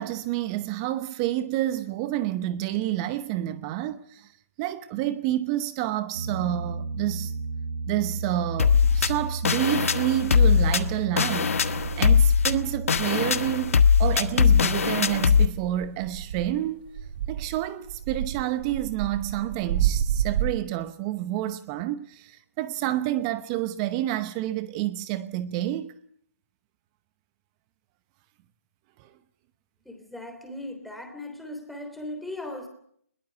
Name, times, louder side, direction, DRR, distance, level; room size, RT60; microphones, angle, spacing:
voice 1, 0.0-4.3 4.6-7.3 7.9-16.9 17.3-25.9 29.0-29.1, right 13 dB, 25° right, 0.9 m, -29 dB
Piano, 6.1-14.2, right 3 dB, 65° right, 7.2 m, -34 dB
sound 1, 8.6-15.5, left 6 dB, 65° left, 1.5 m, -21 dB
sound 2, 10.2-10.9 11.3-20.6, right 10 dB, 40° right, 1.7 m, -31 dB
voice 2, 29.8-32.7, left 1 dB, ahead, 3.4 m, -38 dB
21.5 x 19.0 x 9.5 m
hypercardioid pair, 150°, 8 cm